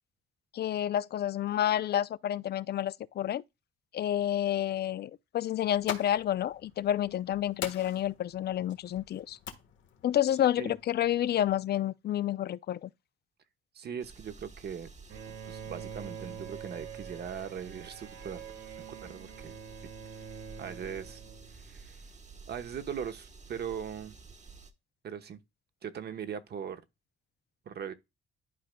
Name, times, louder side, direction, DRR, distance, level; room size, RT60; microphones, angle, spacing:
voice 1, 0.5-3.4 3.9-9.4 10.0-12.9, left 11 dB, 55° left, 0.5 m, -29 dB
sound 1, 5.6-11.6, left 9 dB, 70° left, 1.4 m, -45 dB
voice 2, 13.7-14.9 15.3-18.4 19.0-19.6 20.6-21.2 21.7-21.9 22.5-24.1 25.0-25.4 25.8-26.8 27.7-27.9, right 8 dB, 55° right, 1.1 m, -39 dB
sound 2, 14.0-24.7, right 4 dB, 35° right, 1.2 m, -51 dB
Bowed string instrument, 15.1-21.9, right 7 dB, 75° right, 2.0 m, -45 dB
11.5 x 4.9 x 2.2 m
cardioid pair, 90°, 20 cm